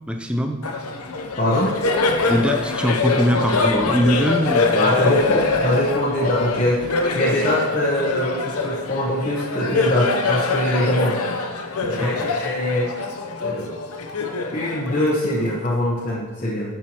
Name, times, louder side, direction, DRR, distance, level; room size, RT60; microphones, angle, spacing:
voice 1, 0.1-0.6 2.3-5.0 12.0-12.3, equal, 5° right, 4 dB, 0.4 m, -22 dB
Laughter, 0.6-15.6, left 3 dB, 80° left, 0.8 m, -24 dB
voice 2, 1.4-1.8 4.8-11.2 11.9-12.9 13.4-13.7 14.5-16.7, left 1 dB, 35° left, -7 dB, 1.0 m, -22 dB
10.5 x 6.0 x 3.0 m, 1.2 s
head